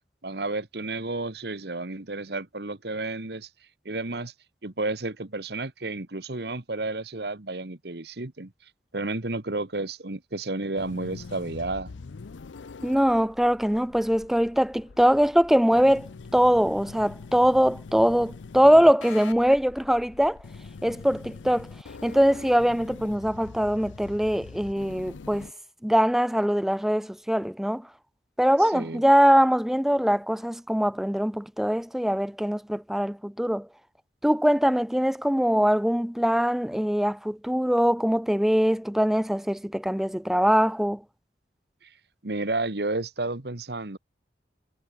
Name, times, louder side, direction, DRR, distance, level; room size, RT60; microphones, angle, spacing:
voice 1, 0.2-3.5 3.8-4.3 4.6-8.5 8.9-11.9 28.6-29.0 41.8-41.9 42.2-44.0, right 2 dB, 60° right, 1.4 m, -31 dB
sound 1, 10.8-25.5, left 4 dB, 90° left, 0.6 m, -44 dB
voice 2, 12.8-20.4 20.8-21.7 22.0-25.5 25.8-27.9 28.4-33.7 34.2-41.0, equal, ahead, 0.3 m, -22 dB
head